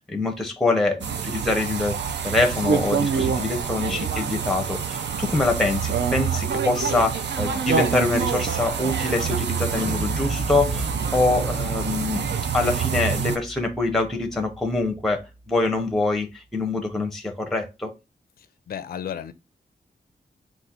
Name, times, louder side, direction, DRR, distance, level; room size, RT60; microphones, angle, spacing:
voice 1, 0.1-2.0 2.2-12.3 12.5-17.9, left 2 dB, ahead, 0.6 m, -25 dB
sound 1, 1.0-13.4, right 6 dB, 85° right, 0.6 m, -26 dB
sound 2, 9.8-15.4, right 1 dB, 45° right, 2.0 m, -35 dB
voice 2, 18.4-19.3, left 8 dB, 60° left, 0.4 m, -34 dB
3.9 x 2.4 x 4.1 m
wide cardioid pair, 180°, 18 cm